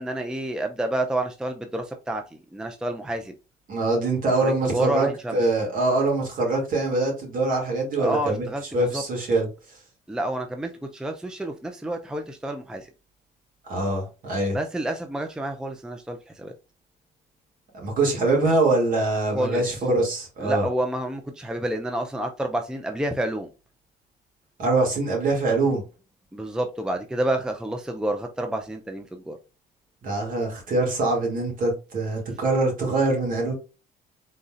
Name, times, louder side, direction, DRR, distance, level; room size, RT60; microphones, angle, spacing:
voice 1, 0.0-3.3 4.4-5.4 8.0-9.0 10.1-12.9 14.5-16.5 19.3-19.6 20.4-23.5 26.3-29.4, right 1 dB, 5° right, 0.5 m, -29 dB
voice 2, 3.7-8.5 8.7-9.8 13.7-14.6 17.7-20.6 24.6-25.8 30.0-33.5, right 2 dB, 55° right, 2.5 m, -24 dB
4.0 x 4.0 x 2.5 m
cardioid pair, 110°, 17 cm